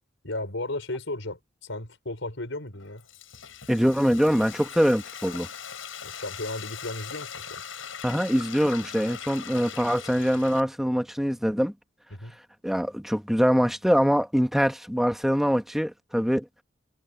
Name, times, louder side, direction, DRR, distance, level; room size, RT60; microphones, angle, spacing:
voice 1, 0.2-3.0 6.0-7.6 12.1-12.4, left 2 dB, 70° left, 6.0 m, -35 dB
Frying (food), 2.7-10.6, left 8 dB, 90° left, 6.7 m, -40 dB
voice 2, 3.7-5.5 8.0-11.7 12.6-16.5, equal, ahead, 1.4 m, -23 dB
head